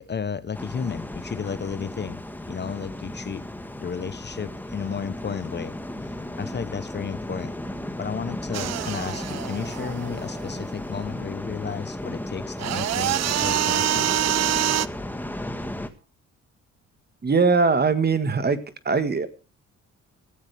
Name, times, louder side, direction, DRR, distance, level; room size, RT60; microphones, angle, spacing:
voice 1, 0.0-2.2 2.5-3.4 3.8-5.7 6.0-7.6 8.0-14.1, left 6 dB, 35° left, 15 dB, 0.9 m, -33 dB
sound 1, 0.5-15.9, left 1 dB, 5° left, 1.5 m, -35 dB
sound 2, 8.5-10.6 12.6-14.9, right 12 dB, 60° right, 0.7 m, -25 dB
voice 2, 17.2-18.6 18.8-19.3, right 4 dB, 35° right, 11 dB, 1.7 m, -21 dB
16.5 x 14.5 x 3.4 m, 0.32 s
cardioid pair, 90°, 30 cm